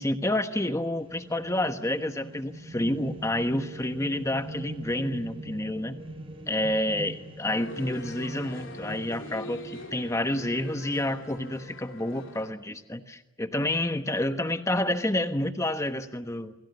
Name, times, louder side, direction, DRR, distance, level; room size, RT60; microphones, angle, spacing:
voice 1, 0.0-6.0 6.5-16.5, left 1 dB, 15° left, 8 dB, 1.2 m, -29 dB
sound 1, 1.0-11.7, right 1 dB, 25° right, 6.9 m, -43 dB
sound 2, 7.5-12.5, left 1 dB, 60° left, 4.1 m, -43 dB
28.0 x 23.5 x 7.0 m, 1.0 s
head